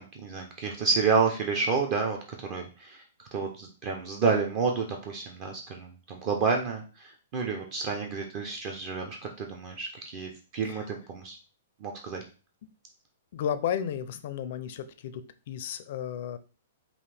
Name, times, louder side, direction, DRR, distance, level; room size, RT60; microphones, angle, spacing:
voice 1, 0.0-2.2 2.5-3.0 3.3-11.3 11.8-12.2, right 5 dB, 35° right, 2 dB, 0.7 m, -29 dB
voice 2, 13.3-15.2 15.5-16.4, left 9 dB, 55° left, 12 dB, 0.5 m, -32 dB
5.5 x 2.5 x 3.4 m, 0.34 s
hypercardioid pair, 150°, 0 cm